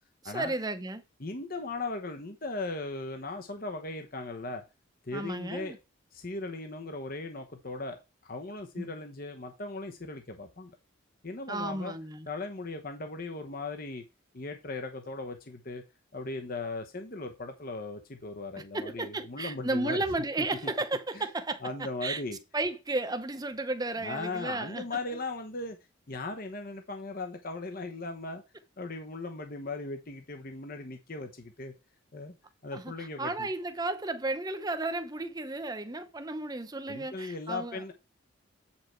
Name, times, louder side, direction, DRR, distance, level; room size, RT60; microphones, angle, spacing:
voice 1, 0.2-1.0 5.1-5.8 8.8-8.9 11.5-12.3 18.5-22.2 22.5-24.8 32.7-37.8, right 2 dB, 20° right, 0.8 m, -33 dB
voice 2, 1.2-4.6 5.0-5.7 6.1-10.8 11.2-11.9 12.3-14.0 14.3-15.8 16.1-20.0 21.1-21.2 21.6-22.4 24.0-25.8 26.1-28.4 28.8-31.7 32.1-32.3 32.6-33.5 36.9-37.9, left 3 dB, 45° left, 1.0 m, -38 dB
8.0 x 5.8 x 4.4 m
head